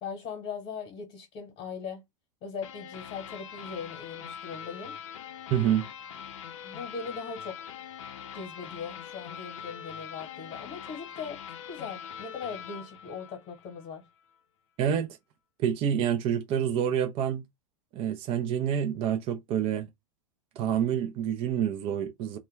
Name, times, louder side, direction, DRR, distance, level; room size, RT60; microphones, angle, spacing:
voice 1, 0.0-2.0 2.4-5.0 6.6-7.7 8.3-11.4 11.7-14.1, left 6 dB, 40° left, 1.1 m, -39 dB
sound 1, 2.6-13.9, left 8 dB, 70° left, 0.5 m, -43 dB
voice 2, 5.5-5.9 14.8-15.1 15.6-17.4 17.9-19.9 20.6-22.4, right 9 dB, 35° right, 0.5 m, -27 dB
2.2 x 2.1 x 3.1 m
hypercardioid pair, 105°, 17 cm